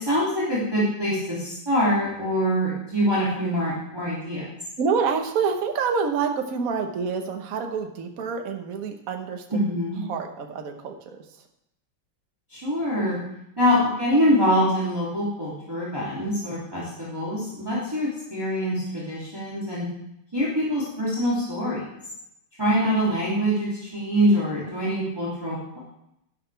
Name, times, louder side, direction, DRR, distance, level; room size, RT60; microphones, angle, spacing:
voice 1, 0.0-4.5 9.5-10.0 12.5-13.2 13.6-19.8 20.3-21.8 22.6-25.8, equal, 10° right, -8 dB, 2.7 m, -24 dB
voice 2, 4.8-9.4 10.0-11.2, right 5 dB, 50° right, 4 dB, 1.4 m, -27 dB
12.0 x 11.0 x 3.4 m, 0.81 s
omnidirectional pair, 2.2 m